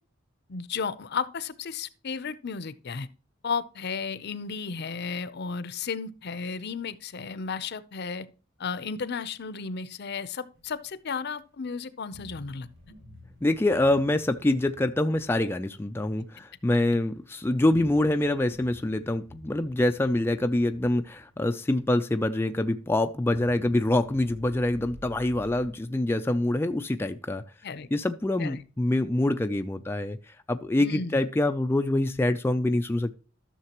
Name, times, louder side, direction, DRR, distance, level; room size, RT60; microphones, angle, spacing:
voice 1, 0.5-3.1 3.4-8.3 8.6-12.7 27.6-27.9 28.4-28.6 30.8-31.3, left 5 dB, 55° left, 0.6 m, -34 dB
sound 1, 10.5-11.2 12.1-16.4 17.7-22.3 23.3-25.7, equal, 60° right, 5.6 m, -51 dB
voice 2, 13.4-27.4 27.9-33.1, left 1 dB, 10° left, 0.3 m, -25 dB
13.0 x 6.6 x 2.9 m
head